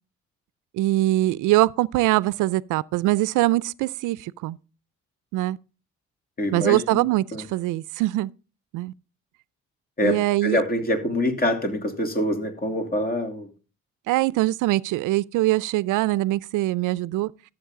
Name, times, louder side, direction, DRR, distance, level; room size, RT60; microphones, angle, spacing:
voice 1, 0.7-4.6 5.3-5.6 6.5-7.2 7.5-8.3 8.7-8.9 10.0-10.6 14.1-17.3, right 17 dB, 90° right, 0.5 m, -22 dB
voice 2, 6.4-7.0 7.3-7.4 10.0-13.5, left 1 dB, 30° left, 2.7 m, -25 dB
13.0 x 7.3 x 3.6 m
cardioid pair, 90°, 30 cm